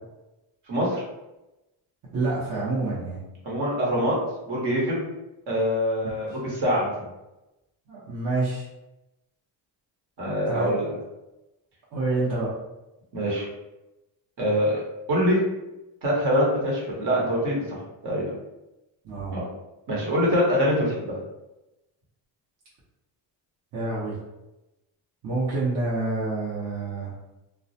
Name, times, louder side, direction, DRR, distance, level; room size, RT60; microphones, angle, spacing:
voice 1, 0.7-1.0 3.4-4.2 4.5-5.0 5.5-6.9 10.2-10.9 13.1-13.5 14.4-14.8 15.1-15.4 16.0-18.2 19.3-19.5 19.9-21.2, equal, 60° right, -4 dB, 1.1 m, -24 dB
voice 2, 2.1-3.2 7.9-8.6 10.5-10.7 11.9-12.5 19.0-19.4 23.7-24.2 25.2-27.1, right 3 dB, 40° right, -8 dB, 0.8 m, -27 dB
2.3 x 2.1 x 2.7 m, 0.96 s
cardioid pair, 105°, 46 cm